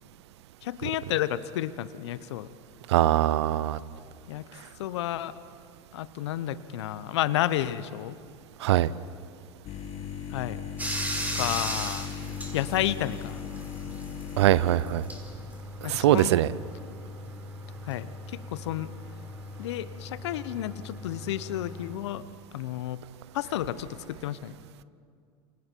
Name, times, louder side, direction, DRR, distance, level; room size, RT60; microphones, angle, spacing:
voice 1, 0.6-2.5 4.3-4.4 4.8-5.3 5.9-8.2 10.3-10.6 11.3-12.1 12.5-13.4 15.8-16.4 17.8-18.9 19.6-22.3 22.5-23.0 23.3-24.6, left 13 dB, 75° left, 15 dB, 0.9 m, -31 dB
voice 2, 2.9-3.8 8.6-8.9 14.4-15.0 15.9-16.5, right 14 dB, 75° right, 19 dB, 0.7 m, -22 dB
sound 1, 9.6-14.8, left 7 dB, 50° left, 2.3 m, -37 dB
Bathtub (filling or washing), 10.8-22.0, equal, 10° right, 4.8 m, -38 dB
28.5 x 27.5 x 4.6 m, 2.3 s
hypercardioid pair, 90°, 14 cm